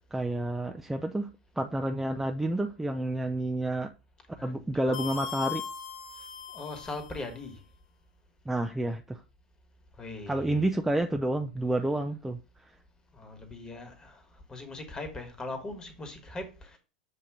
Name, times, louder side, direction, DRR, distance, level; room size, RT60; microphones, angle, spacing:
voice 1, 0.1-1.3 1.6-3.9 4.4-5.6 8.5-9.2 10.3-12.4, right 1 dB, 5° right, 0.5 m, -29 dB
voice 2, 4.4-5.0 6.5-7.6 10.0-10.7 13.1-14.2 14.5-16.8, left 2 dB, 20° left, 1.5 m, -40 dB
sound 1, 4.9-7.3, left 8 dB, 55° left, 1.2 m, -38 dB
7.1 x 2.7 x 4.8 m
figure-of-eight pair, 85°, 4 cm